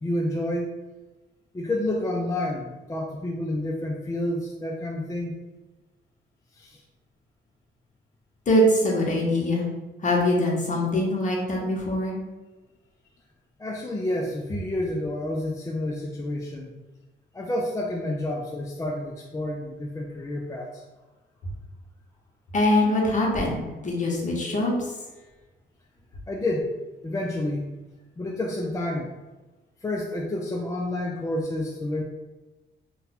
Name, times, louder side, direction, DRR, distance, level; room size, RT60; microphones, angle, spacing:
voice 1, 0.0-0.7 1.5-5.3 6.5-6.8 13.6-16.7 17.3-20.8 26.3-26.7 27.0-27.7 28.2-29.1 29.8-32.0, left 1 dB, 15° left, -1 dB, 0.3 m, -29 dB
voice 2, 8.5-9.6 10.0-12.2 22.5-23.6 23.8-24.9, left 1 dB, 40° left, -2 dB, 1.0 m, -23 dB
2.6 x 2.2 x 4.1 m, 1.2 s
cardioid pair, 90°, 20 cm